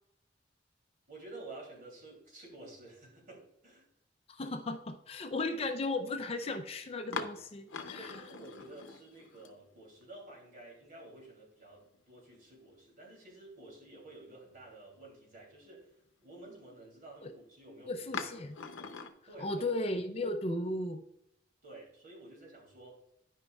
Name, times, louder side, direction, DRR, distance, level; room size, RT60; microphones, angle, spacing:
voice 1, 1.1-3.9 8.0-18.1 19.3-19.7 21.6-23.0, right 2 dB, 45° right, -2 dB, 2.9 m, -51 dB
voice 2, 4.3-8.2 17.2-17.3 17.9-18.6 19.4-21.0, left 2 dB, 30° left, 6 dB, 0.5 m, -35 dB
sound 1, 5.6-5.7 6.4-6.6 7.1-10.0 10.3-10.4 11.8-12.5 13.0-13.1 13.7-13.8 18.1-19.1, left 5 dB, 85° left, 0.7 m, -43 dB
12.0 x 5.2 x 2.3 m, 0.78 s
head